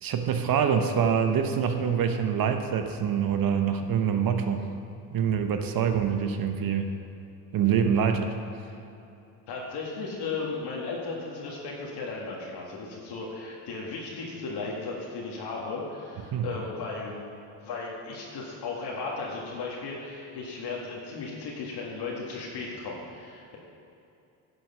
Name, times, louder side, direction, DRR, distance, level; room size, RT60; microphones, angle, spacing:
voice 1, 0.0-4.6 5.1-6.9 7.5-8.4 16.3-16.5, right 7 dB, 50° right, 7 dB, 1.0 m, -25 dB
voice 2, 9.5-17.2 17.5-23.6, left 4 dB, 60° left, -3 dB, 1.8 m, -35 dB
11.0 x 6.3 x 5.5 m, 2.7 s
supercardioid pair, 75°, 46 cm